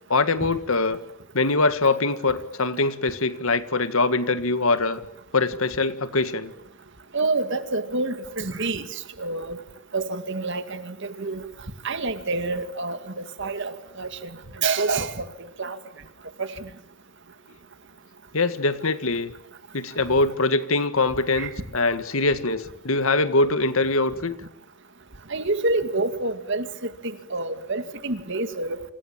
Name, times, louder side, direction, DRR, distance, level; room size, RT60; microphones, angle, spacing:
voice 1, 0.1-1.0 1.3-5.0 5.3-6.5 18.3-19.3 19.7-24.3, left 3 dB, 70° left, 12 dB, 1.8 m, -23 dB
voice 2, 7.1-9.6 9.9-11.4 11.8-14.3 14.6-15.3 15.6-15.8 16.4-16.7 21.4-21.5 25.3-28.8, right 3 dB, 55° right, 10 dB, 2.2 m, -28 dB
29.0 x 26.0 x 7.4 m, 0.71 s
head